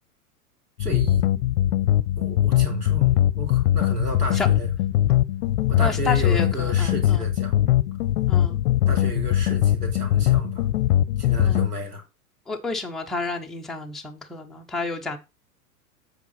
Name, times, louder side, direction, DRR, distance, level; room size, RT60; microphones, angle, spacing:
sound 1, 0.8-11.7, left 12 dB, 45° left, 0.6 m, -21 dB
voice 1, 0.8-1.2 2.2-4.7 5.7-7.6 8.9-10.7 11.2-12.0, equal, 80° right, 3.2 m, -32 dB
voice 2, 5.8-7.3 8.3-8.6 11.4-11.7 12.5-15.2, left 3 dB, ahead, 0.3 m, -30 dB
8.1 x 4.8 x 5.6 m
figure-of-eight pair, 90°, 46 cm